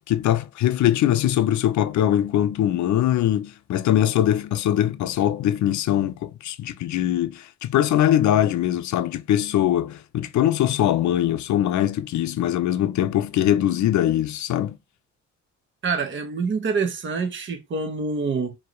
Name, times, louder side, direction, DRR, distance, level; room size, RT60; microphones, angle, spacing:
voice 1, 0.1-14.8, left 11 dB, 70° left, 0.6 m, -22 dB
voice 2, 15.8-18.6, right 4 dB, 40° right, 0.9 m, -26 dB
4.6 x 2.9 x 3.0 m
cardioid pair, 90°, 30 cm